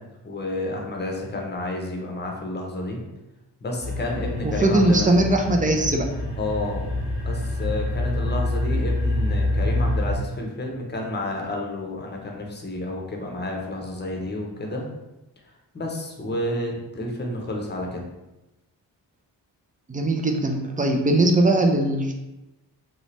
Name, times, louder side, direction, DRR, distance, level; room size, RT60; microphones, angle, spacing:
voice 1, 0.2-3.0 3.6-5.1 6.4-6.9 7.2-14.9 15.7-18.0, left 1 dB, 20° left, 0 dB, 0.8 m, -30 dB
sound 1, 3.8-10.2, left 1 dB, 75° left, 1.0 m, -26 dB
voice 2, 4.4-6.1 19.9-22.1, right 1 dB, 20° right, 3 dB, 0.4 m, -20 dB
2.8 x 2.0 x 3.2 m, 0.98 s
hypercardioid pair, 40°, 48 cm